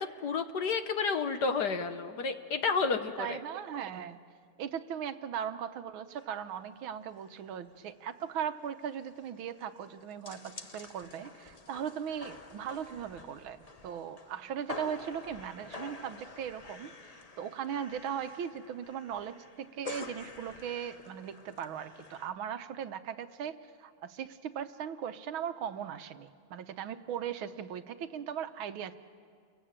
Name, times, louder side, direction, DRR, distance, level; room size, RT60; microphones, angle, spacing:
voice 1, 0.0-3.4, left 5 dB, 55° left, 1.4 m, -31 dB
voice 2, 3.2-4.2 4.6-29.0, right 8 dB, 75° right, 1.6 m, -38 dB
sound 1, 6.2-6.3 6.6-6.7 7.1-7.4 7.7-7.8 8.1-22.3, left 3 dB, 40° left, 0.5 m, -48 dB
30.0 x 22.5 x 8.8 m
omnidirectional pair, 2.4 m